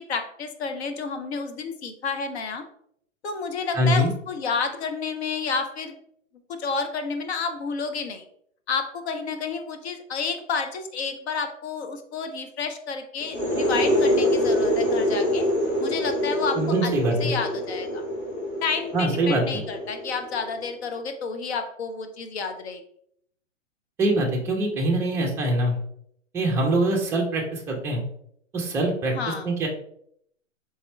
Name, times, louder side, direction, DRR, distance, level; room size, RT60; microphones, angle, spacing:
voice 1, 0.0-2.6 3.2-5.9 6.6-8.3 8.7-15.5 15.8-16.9 17.2-18.0 18.6-22.8 29.1-29.5, left 5 dB, 55° left, 7 dB, 0.7 m, -30 dB
voice 2, 3.7-4.1 16.6-17.3 18.9-19.6 24.0-25.8 26.3-28.0 28.5-29.7, right 1 dB, 5° right, -1 dB, 0.4 m, -23 dB
sound 1, 13.2-20.7, left 1 dB, 20° left, 1.4 m, -25 dB
4.2 x 3.6 x 3.1 m, 0.68 s
hypercardioid pair, 130°, 38 cm